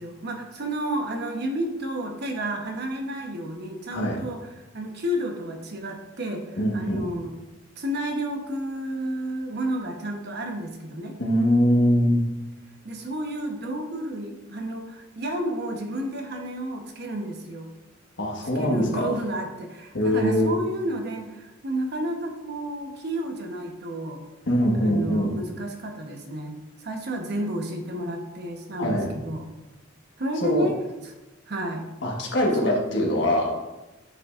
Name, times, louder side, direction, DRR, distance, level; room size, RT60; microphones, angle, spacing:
voice 1, 0.0-4.5 4.7-7.3 7.8-11.2 12.8-17.7 18.5-24.2 24.8-29.5 30.2-30.7 31.0-31.1 31.5-31.9 32.6-32.8, right 1 dB, 60° right, 3 dB, 1.0 m, -31 dB
voice 2, 3.9-4.2 6.6-7.1 11.2-12.3 18.2-19.1 19.9-20.6 24.5-25.4 28.8-29.1 30.4-30.7 32.0-33.6, equal, 65° left, -1 dB, 1.4 m, -23 dB
9.6 x 5.4 x 2.5 m, 1.0 s
head